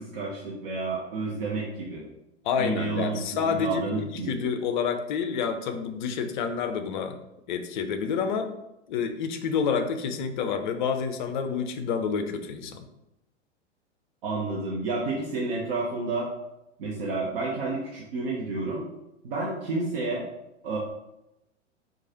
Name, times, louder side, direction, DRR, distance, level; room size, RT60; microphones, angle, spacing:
voice 1, 0.0-2.1 2.6-4.4 14.2-16.3 16.8-18.9 19.2-20.3 20.6-20.8, right 3 dB, 50° right, -4 dB, 0.8 m, -30 dB
voice 2, 2.4-7.2 7.5-8.5 8.9-12.9, left 6 dB, 40° left, 8 dB, 0.5 m, -28 dB
4.6 x 2.4 x 2.8 m, 0.89 s
figure-of-eight pair, 95°, 36 cm